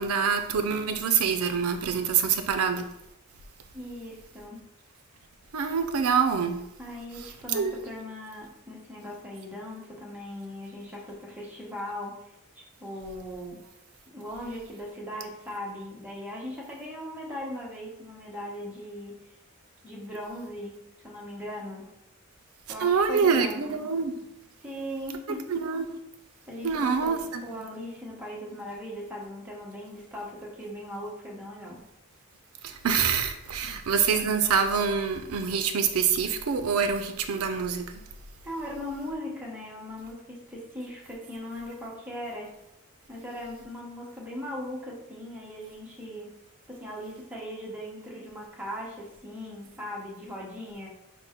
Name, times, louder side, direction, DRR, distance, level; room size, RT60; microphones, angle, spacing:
voice 1, 0.0-2.9 5.5-6.6 7.5-7.7 22.8-24.1 25.5-25.9 26.6-27.4 32.6-37.9, right 6 dB, 90° right, 7 dB, 0.5 m, -25 dB
voice 2, 3.7-4.7 6.8-12.2 12.5-13.6 14.1-19.2 19.8-21.9 22.7-23.9 24.6-25.5 26.5-31.8 38.4-42.5 43.1-46.3 46.7-50.9, left 1 dB, 10° right, -3 dB, 0.9 m, -39 dB
5.7 x 2.2 x 3.5 m, 0.83 s
head